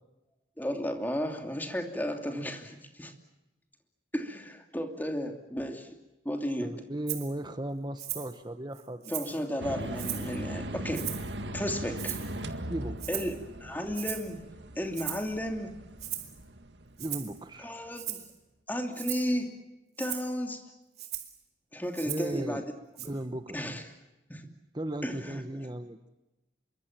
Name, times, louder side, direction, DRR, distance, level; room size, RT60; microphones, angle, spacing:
voice 1, 0.6-3.1 4.1-6.0 6.2-6.8 9.1-11.1 11.5-12.2 13.1-14.4 14.8-15.7 17.6-18.2 18.7-19.5 20.0-20.6 21.7-22.6 23.5-23.8 24.3-24.5 25.0-25.4, equal, 10° left, 5 dB, 2.9 m, -33 dB
voice 2, 6.6-9.1 12.7-13.3 17.0-17.7 22.0-22.6 23.0-23.5 24.7-26.0, right 1 dB, 25° right, 9 dB, 1.0 m, -36 dB
Rattle (instrument), 7.1-7.3 8.0-8.3 8.7-9.4 10.0-10.3 10.9-11.3 12.0-12.4 13.0-13.4 13.9-14.3 14.9-15.3 16.0-16.3 17.0-17.4 17.9-18.3 18.9-19.3 20.0-20.3 21.0-21.4 21.9-22.4 23.0-23.1, right 13 dB, 60° right, 3.3 m, -38 dB
sound 1, 9.6-17.7, right 1 dB, 85° right, 1.9 m, -39 dB
27.0 x 23.5 x 7.5 m, 0.98 s
head